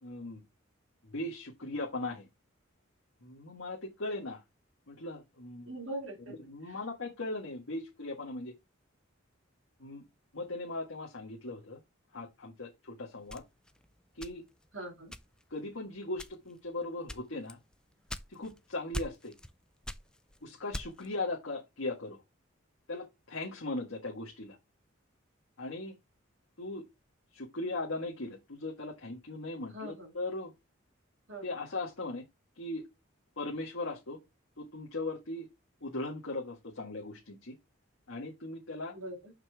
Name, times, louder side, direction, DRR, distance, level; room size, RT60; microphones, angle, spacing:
voice 1, 0.0-0.4 1.0-2.2 3.2-4.4 4.9-5.8 6.3-8.5 9.8-10.0 10.3-11.8 12.1-13.4 14.1-14.4 15.5-17.6 18.3-19.3 20.4-22.2 22.9-24.6 25.6-26.0 26.6-26.8 27.3-30.5 31.4-32.2 32.6-32.8 33.4-34.2 34.6-35.5 35.8-37.6 38.1-38.9, left 2 dB, 75° left, 1.6 m, -38 dB
voice 2, 5.7-6.3 14.7-15.1 29.7-30.1 31.3-31.4 38.9-39.3, right 1 dB, 70° right, 2.3 m, -41 dB
sound 1, 13.3-14.7 15.1-15.6 16.1-16.6 17.1-18.6 18.9-19.5 19.8-21.2, left 1 dB, 5° left, 0.4 m, -41 dB
6.5 x 5.7 x 3.4 m
head